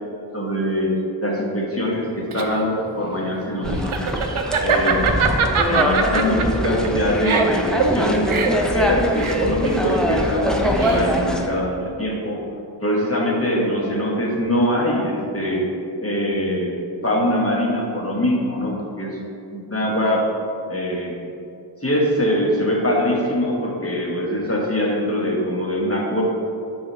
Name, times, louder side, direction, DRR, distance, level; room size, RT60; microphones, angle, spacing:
voice 1, 0.3-0.9 1.2-4.1 4.6-5.1 5.6-12.4 12.8-15.6 16.0-16.7 17.0-19.2 19.5-20.3 20.7-21.1 21.8-26.2, left 1 dB, 30° left, -2 dB, 1.4 m, -23 dB
Laughter, 1.9-11.3, right 5 dB, 85° right, 0.6 m, -23 dB
sound 1, 3.6-11.5, equal, ahead, 0.6 m, -23 dB
6.8 x 3.5 x 5.4 m, 2.6 s
wide cardioid pair, 45°, 49 cm